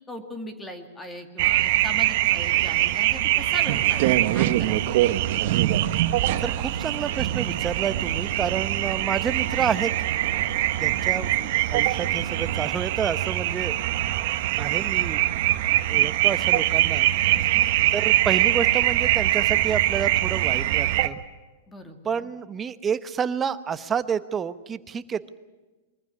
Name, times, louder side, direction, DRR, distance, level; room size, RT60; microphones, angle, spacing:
voice 1, 0.1-4.9 10.9-11.2 17.3-17.7 21.7-22.1, left 1 dB, 10° left, 6 dB, 2.1 m, -39 dB
sound 1, 1.4-21.1, right 14 dB, 55° right, 1.3 m, -23 dB
sound 2, 3.6-12.7, right 7 dB, 70° right, 1.9 m, -38 dB
voice 2, 6.4-9.9 10.8-13.7 14.6-15.2 15.9-17.1 17.9-21.2 22.0-25.3, right 7 dB, 20° right, 13 dB, 1.0 m, -29 dB
23.0 x 14.5 x 9.9 m, 1.2 s
hypercardioid pair, 140°, 0 cm